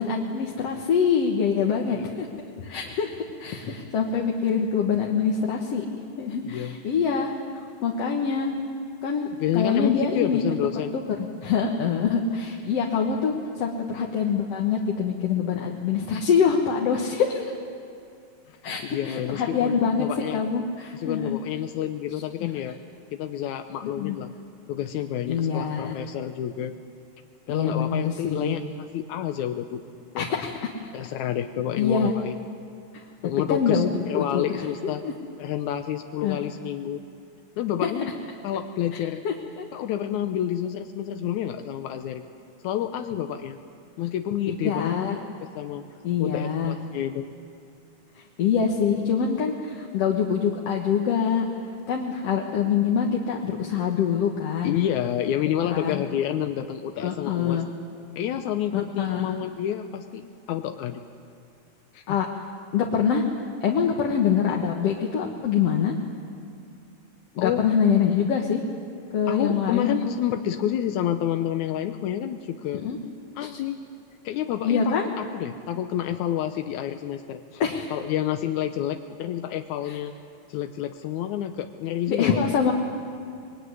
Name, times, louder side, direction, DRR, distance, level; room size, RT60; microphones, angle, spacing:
voice 1, 0.0-2.3 2.6-3.1 3.4-5.8 6.2-7.3 7.8-8.5 9.0-10.4 10.9-17.5 18.6-20.1 20.3-21.4 22.4-22.5 23.8-24.2 25.3-26.0 27.5-28.6 30.2-30.6 31.8-32.1 32.9-33.0 33.5-34.4 34.8-35.1 36.2-36.4 37.8-37.9 39.2-39.7 44.6-45.2 46.0-46.8 48.2-51.4 51.9-54.8 55.7-56.0 57.0-57.7 58.7-59.3 62.1-62.3 62.7-63.2 63.6-65.9 67.4-68.6 69.1-70.1 72.7-73.0 73.4-73.5 74.6-75.1 77.6-77.9 79.9-80.0 82.1-82.7, left 6 dB, 60° left, 0 dB, 2.4 m, -25 dB
voice 2, 6.4-6.8 9.4-11.0 18.8-20.4 20.9-22.8 23.1-24.3 24.7-26.7 27.5-28.6 28.9-29.8 30.1-30.4 30.9-32.3 33.2-35.0 35.4-37.0 37.6-38.1 38.4-39.2 39.7-42.2 42.6-43.6 44.0-45.0 45.6-45.8 46.2-47.3 54.6-57.6 58.2-61.0 61.9-62.3 67.4-67.6 69.3-72.8 73.4-73.8 74.2-77.6 77.9-80.1 80.5-82.5, left 10 dB, 85° left, 7 dB, 2.2 m, -29 dB
24.5 x 21.0 x 9.6 m, 2.5 s
omnidirectional pair, 3.3 m